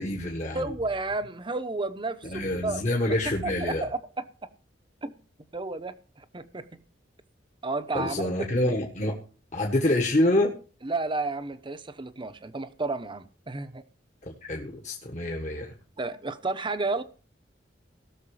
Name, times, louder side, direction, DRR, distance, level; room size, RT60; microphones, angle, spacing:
voice 1, 0.0-0.7 2.3-3.9 7.9-9.2 9.5-10.6 14.2-15.7, left 1 dB, 40° left, 1.5 m, -27 dB
voice 2, 0.5-2.8 3.4-4.3 5.0-5.1 5.5-6.8 7.6-8.5 10.8-13.8 16.0-17.0, right 3 dB, 25° right, 0.9 m, -32 dB
17.5 x 6.7 x 4.9 m
head